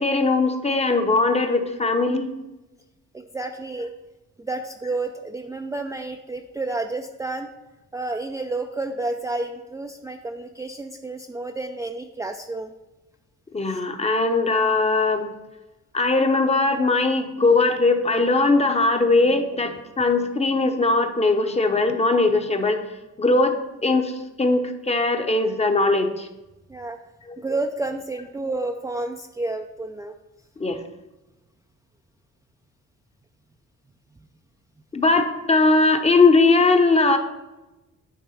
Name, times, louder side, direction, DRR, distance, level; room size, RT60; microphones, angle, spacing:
voice 1, 0.0-2.3 13.5-15.3 15.9-22.8 23.2-23.5 23.8-24.1 24.4-26.3 27.3-27.4 30.6-30.8 34.9-37.2, left 3 dB, 20° left, 6 dB, 0.8 m, -20 dB
voice 2, 3.1-3.9 4.4-7.5 7.9-12.7 13.7-13.8 26.7-27.0 27.4-30.1, right 2 dB, 10° right, 4 dB, 0.4 m, -30 dB
9.3 x 3.3 x 5.6 m, 1.0 s
cardioid pair, 90°, 30 cm